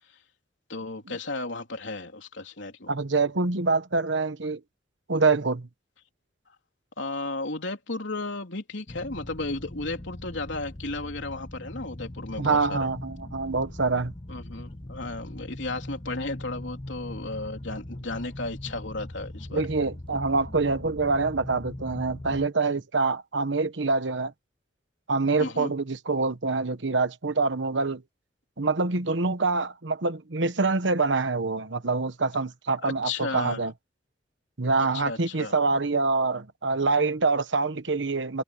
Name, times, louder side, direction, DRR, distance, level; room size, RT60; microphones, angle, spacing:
voice 1, 0.7-2.9 7.0-12.9 14.3-19.6 25.4-25.7 32.8-33.7 34.8-35.5, left 2 dB, 80° left, 3.4 m, -34 dB
voice 2, 2.9-4.6 5.1-5.7 12.4-14.1 19.5-24.3 25.1-28.0 28.6-33.7 34.6-38.4, right 3 dB, 80° right, 1.2 m, -25 dB
sound 1, 8.9-22.5, left 1 dB, 30° left, 1.0 m, -40 dB
head